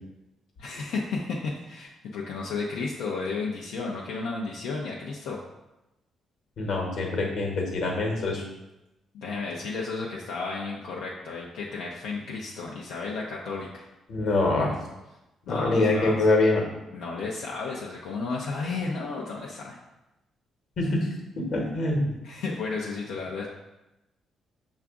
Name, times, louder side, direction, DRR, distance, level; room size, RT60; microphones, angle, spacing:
voice 1, 0.6-5.4 9.1-13.9 15.5-16.2 16.9-19.8 22.2-23.5, left 4 dB, 90° left, -3 dB, 0.5 m, -33 dB
voice 2, 6.6-8.4 14.1-14.7 15.5-16.6 20.8-21.1 21.4-22.1, left 2 dB, 60° left, 0 dB, 1.1 m, -24 dB
5.8 x 2.4 x 3.6 m, 0.96 s
cardioid pair, 90°, 0 cm